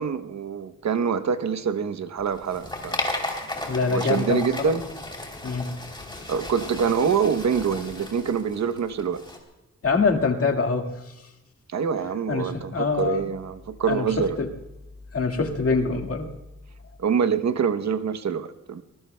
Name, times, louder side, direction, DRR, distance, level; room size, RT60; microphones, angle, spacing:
voice 1, 0.0-3.0 3.9-4.8 6.3-9.2 11.7-14.4 17.0-18.8, right 6 dB, 65° right, 10 dB, 0.9 m, -25 dB
sound 1, 2.2-9.4, left 2 dB, 15° left, 3.1 m, -34 dB
voice 2, 3.7-4.7 5.4-5.8 9.8-11.3 12.3-13.3 13.9-14.5 15.1-16.3, left 4 dB, 50° left, 3 dB, 1.9 m, -25 dB
26.0 x 19.0 x 2.2 m, 0.98 s
wide cardioid pair, 130°, 30 cm